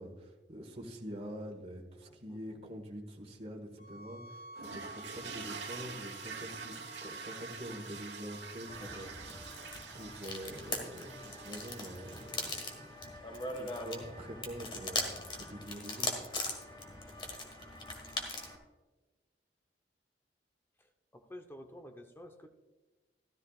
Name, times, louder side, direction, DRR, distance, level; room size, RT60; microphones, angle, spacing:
voice 1, 0.0-9.6 9.9-12.8 13.5-16.1, equal, 35° right, 1 dB, 1.6 m, -45 dB
voice 2, 2.0-2.6 21.1-22.5, left 1 dB, 15° left, 5 dB, 0.8 m, -51 dB
sound 1, 3.8-8.8, equal, 60° left, 1.0 m, -50 dB
sound 2, 4.6-13.0, right 6 dB, 85° right, 1.3 m, -47 dB
sound 3, 8.7-18.6, left 2 dB, 30° left, 1.7 m, -40 dB
13.5 x 13.5 x 2.4 m, 1.2 s
head